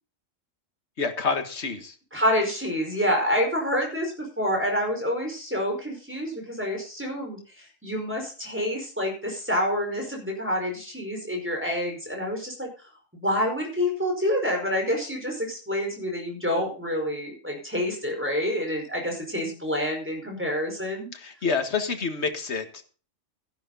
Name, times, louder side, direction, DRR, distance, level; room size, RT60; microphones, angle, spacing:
voice 1, 1.0-2.0 21.1-22.8, left 5 dB, 60° left, 7 dB, 1.9 m, -28 dB
voice 2, 2.1-12.7 13.1-21.1, equal, 10° right, 2 dB, 5.0 m, -27 dB
12.5 x 11.5 x 4.0 m, 0.37 s
omnidirectional pair, 1.3 m